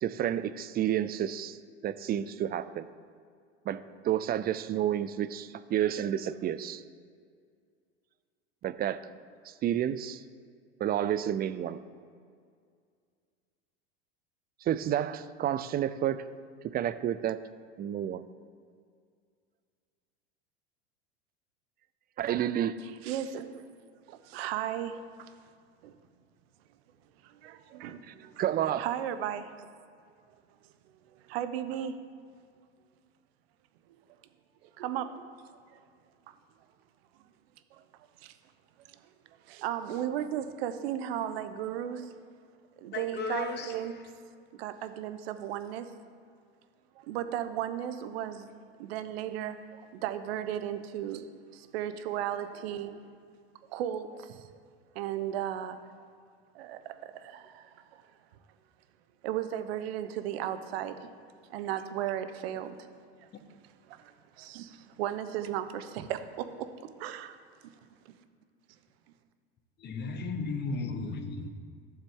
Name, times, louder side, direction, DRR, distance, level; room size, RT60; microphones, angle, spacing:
voice 1, 0.0-1.6 1.8-2.9 3.7-6.8 8.6-9.0 9.4-10.2 10.8-11.8 14.6-16.2 16.6-17.4 17.8-18.2 22.2-22.8 28.4-28.8, right 11 dB, 30° right, 13 dB, 0.5 m, -30 dB
voice 2, 22.8-23.7 24.1-25.3 25.8-25.9 27.2-28.4 28.8-29.7 31.1-32.0 33.9-34.0 34.6-35.3 35.7-35.8 36.3-36.4 37.7-37.8 38.2-38.3 38.9-39.0 39.3-42.2 42.8-43.9 44.6-45.9 46.9-48.5 48.8-51.2 51.5-53.1 53.7-54.5 54.9-55.8 56.5-58.0 59.2-61.1 61.5-62.8 63.2-63.3 63.9-66.4 67.0-67.4, right 10 dB, 70° right, 10 dB, 1.0 m, -35 dB
voice 3, 42.9-43.7 69.8-71.6, left 4 dB, 35° left, 8 dB, 1.1 m, -35 dB
13.0 x 7.3 x 3.7 m, 2.2 s
hypercardioid pair, 100°, 32 cm